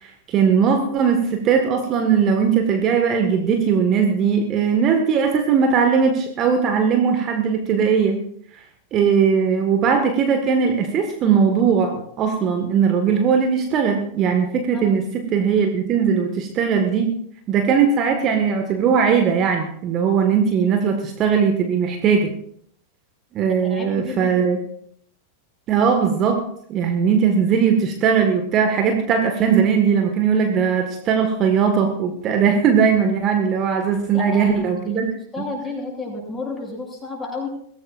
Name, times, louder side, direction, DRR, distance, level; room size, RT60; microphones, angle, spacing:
voice 1, 0.0-8.2 8.5-8.6 8.9-17.1 17.5-22.3 23.3-24.6 25.7-26.4 26.7-35.1, right 6 dB, 35° right, 4 dB, 1.7 m, -19 dB
voice 2, 23.6-24.5 34.1-34.5 34.8-35.1 35.3-37.5, left 3 dB, 10° left, -1 dB, 7.2 m, -31 dB
22.5 x 16.5 x 2.6 m, 0.65 s
figure-of-eight pair, 90°, 0 cm